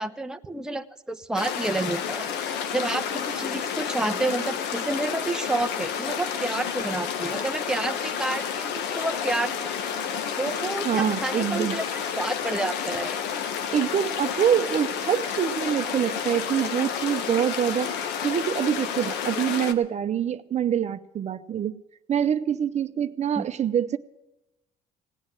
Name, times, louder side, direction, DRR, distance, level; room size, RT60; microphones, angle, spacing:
voice 1, 0.0-2.3 2.7-9.7 10.4-11.8 12.2-13.2 23.4-23.5, right 2 dB, 5° right, 0.7 m, -29 dB
sound 1, 1.4-19.7, left 7 dB, 85° left, 1.3 m, -30 dB
voice 2, 10.8-11.8 13.7-21.7 22.1-24.0, right 9 dB, 40° right, 0.7 m, -25 dB
17.5 x 9.4 x 7.6 m
cardioid pair, 110°, 17 cm